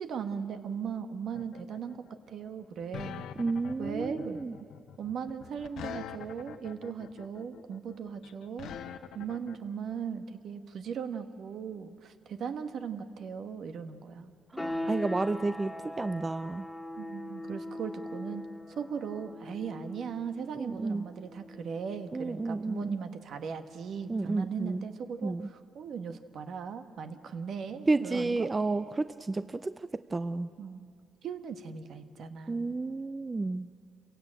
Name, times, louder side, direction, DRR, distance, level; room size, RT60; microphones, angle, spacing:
voice 1, 0.0-3.3 3.8-4.4 5.0-8.7 9.1-14.3 17.0-28.5 30.6-30.9 31.2-32.8, right 6 dB, 65° right, 9 dB, 1.4 m, -38 dB
sound 1, 1.4-9.6, left 9 dB, 75° left, 1.0 m, -44 dB
voice 2, 3.4-4.5 14.5-16.7 20.5-21.0 22.1-23.0 24.1-24.8 25.2-25.5 27.9-30.5 32.5-33.7, right 3 dB, 25° right, 13 dB, 0.5 m, -31 dB
sound 2, 14.6-25.1, left 1 dB, 10° left, 2.2 m, -42 dB
28.0 x 16.5 x 8.9 m, 2.4 s
cardioid pair, 90°, 0 cm